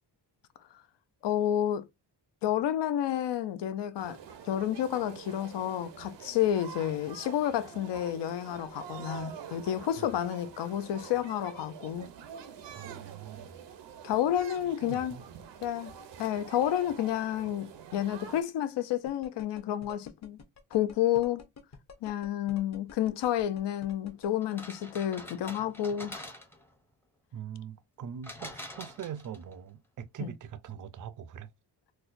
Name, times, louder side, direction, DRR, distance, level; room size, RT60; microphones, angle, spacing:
voice 1, 1.2-1.9 2.4-4.2 4.4-12.1 14.0-15.1 15.6-15.9 16.2-20.4 20.7-21.5 22.0-26.3 30.2-30.3, left 11 dB, 75° left, 0.6 m, -30 dB
sound 1, 4.0-18.4, right 7 dB, 85° right, 0.7 m, -46 dB
voice 2, 12.8-13.6 14.8-15.2 27.3-31.5, right 8 dB, 45° right, 0.5 m, -42 dB
sound 2, 19.1-24.3, left 5 dB, 40° left, 0.8 m, -49 dB
sound 3, 24.4-26.7 28.2-29.5, left 1 dB, 5° left, 0.6 m, -45 dB
4.1 x 2.2 x 2.5 m
cardioid pair, 105°, 42 cm